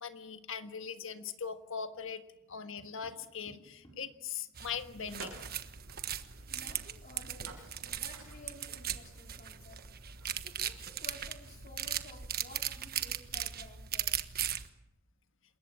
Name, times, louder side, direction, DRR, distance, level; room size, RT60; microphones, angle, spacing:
voice 1, 0.0-2.2 2.5-5.3, left 7 dB, 70° left, 8 dB, 1.6 m, -40 dB
Tap, 2.5-4.2 6.2-6.9, right 1 dB, 20° left, 6.4 m, -61 dB
sound 1, 4.6-14.7, right 10 dB, 50° right, 1.4 m, -38 dB
sound 2, 5.0-11.7, right 3 dB, 85° right, 7.4 m, -54 dB
voice 2, 6.5-9.8 10.4-14.2, left 2 dB, 40° left, 3 dB, 4.2 m, -54 dB
27.5 x 21.5 x 7.5 m, 0.89 s
head